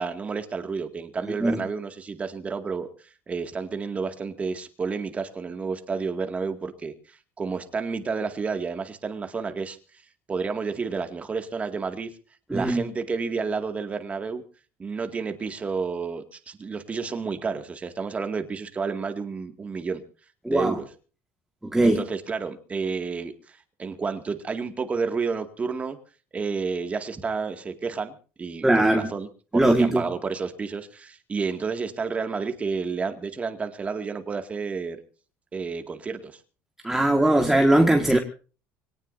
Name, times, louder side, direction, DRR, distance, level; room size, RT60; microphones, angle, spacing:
voice 1, 0.0-2.9 3.3-9.8 10.3-12.1 12.5-14.4 14.8-20.0 20.5-20.9 21.8-26.0 26.3-29.3 29.5-35.0 35.5-36.4, right 5 dB, 25° right, 7 dB, 2.1 m, -30 dB
voice 2, 1.3-1.6 12.5-12.8 20.4-20.8 21.7-22.0 28.6-29.0 29.5-30.0 36.8-38.2, right 1 dB, 5° right, 3 dB, 1.8 m, -20 dB
24.5 x 18.5 x 2.7 m, 0.37 s
cardioid pair, 115°, 5 cm